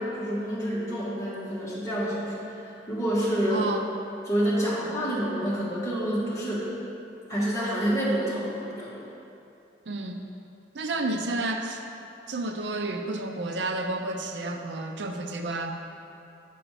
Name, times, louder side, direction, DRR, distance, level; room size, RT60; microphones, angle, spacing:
voice 1, 0.0-3.7 4.3-6.7 7.3-9.1, equal, 20° left, -8 dB, 1.5 m, -28 dB
voice 2, 3.5-3.9 9.9-10.3 10.7-11.8 12.3-15.7, right 2 dB, 75° right, 5 dB, 0.5 m, -31 dB
7.6 x 5.0 x 4.8 m, 2.7 s
head